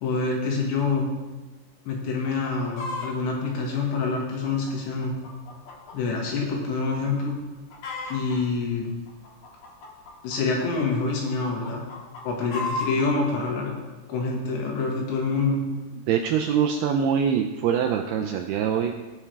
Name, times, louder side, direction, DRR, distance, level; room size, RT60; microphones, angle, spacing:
voice 1, 0.0-1.1 1.9-5.1 5.9-7.4 8.1-8.9 10.2-11.8 12.3-13.7 14.1-15.6, left 4 dB, 80° left, -1 dB, 3.9 m, -26 dB
Chicken rooster, 2.3-3.1 3.7-6.0 6.3-6.4 7.0-7.2 7.5-8.4 9.1-10.8 11.3-13.1 13.7-13.8, left 3 dB, 55° left, 2.5 m, -35 dB
voice 2, 16.1-18.9, right 8 dB, 85° right, 3 dB, 2.3 m, -24 dB
18.0 x 6.1 x 3.3 m, 1.3 s
omnidirectional pair, 5.1 m